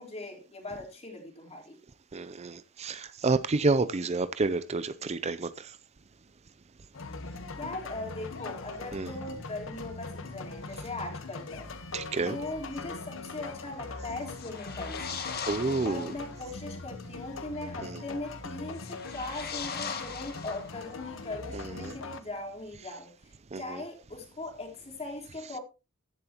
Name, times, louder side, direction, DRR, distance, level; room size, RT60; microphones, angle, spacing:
voice 1, 0.0-1.8 7.6-11.7 12.3-15.2 15.6-25.6, left 2 dB, 30° left, 3.8 m, -40 dB
voice 2, 2.1-5.8 8.9-9.1 11.9-12.4 15.5-16.1 17.8-18.0 21.5-22.0 23.5-23.8, right 3 dB, 30° right, 0.5 m, -30 dB
sound 1, 6.9-22.2, left 3 dB, 65° left, 1.2 m, -41 dB
sound 2, 14.3-16.3 18.7-21.0, left 6 dB, 50° left, 1.9 m, -39 dB
15.0 x 11.0 x 2.9 m
head